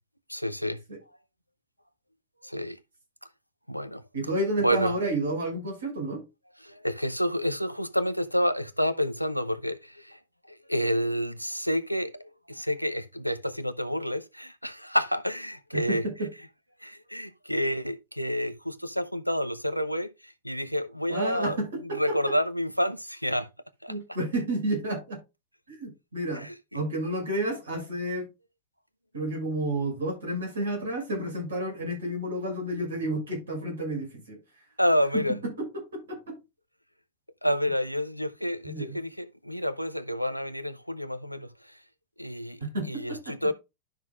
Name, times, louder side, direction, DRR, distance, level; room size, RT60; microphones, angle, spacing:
voice 1, 0.3-0.8 2.4-2.8 3.7-4.0 4.6-4.9 6.6-10.2 10.7-16.0 16.8-21.6 21.9-23.5 23.8-23.9 26.4-26.8 34.8-35.4 37.4-41.5 42.2-42.6 42.9-43.5, equal, 90° left, 0.7 m, -29 dB
voice 2, 4.1-6.2 15.7-16.3 21.1-22.4 23.9-25.2 25.7-26.5 26.7-28.3 29.1-34.4 35.1-36.4 38.6-39.0 42.6-43.4, right 1 dB, 70° right, 5.5 m, -31 dB
12.0 x 6.2 x 2.3 m
figure-of-eight pair, 90°, 0 cm